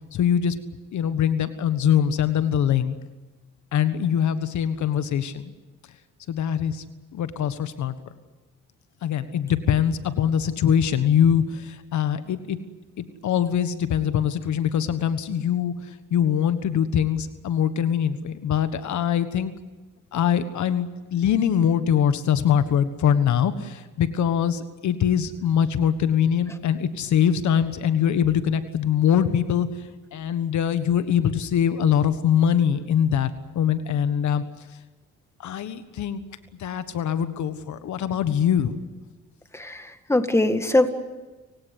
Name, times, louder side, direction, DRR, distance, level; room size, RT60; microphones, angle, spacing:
voice 1, 0.1-0.6 0.9-3.0 3.7-5.5 6.3-6.8 7.1-7.9 9.0-12.6 13.0-19.5 20.1-29.7 30.1-33.3 33.5-34.4 35.4-36.2 36.6-38.8, left 9 dB, 70° left, 11 dB, 1.5 m, -23 dB
voice 2, 39.5-39.8 40.1-40.9, left 1 dB, 10° left, 8 dB, 1.9 m, -21 dB
30.0 x 17.5 x 8.3 m, 1.2 s
cardioid pair, 90°, 30 cm